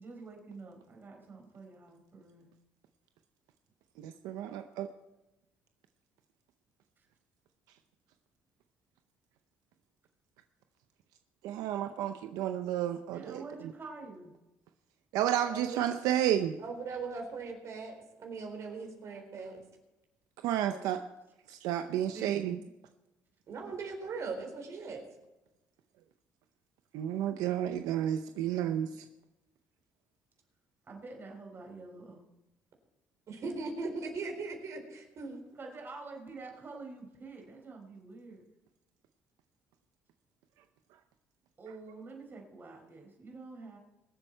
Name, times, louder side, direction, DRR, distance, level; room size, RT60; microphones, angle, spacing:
voice 1, 0.0-2.5 13.1-14.3 20.6-20.9 22.0-22.7 30.9-32.3 35.5-38.4 41.6-43.8, right 3 dB, 35° right, 1 dB, 4.6 m, -47 dB
voice 2, 4.0-4.9 11.4-13.4 15.1-16.6 20.4-21.0 21.5-22.6 26.9-29.0, right 11 dB, 85° right, 8 dB, 0.6 m, -31 dB
voice 3, 15.5-15.9 16.6-19.6 23.5-25.0 33.3-35.4, right 4 dB, 55° right, 3 dB, 4.0 m, -39 dB
23.0 x 7.9 x 4.5 m, 0.99 s
cardioid pair, 100°, 6 cm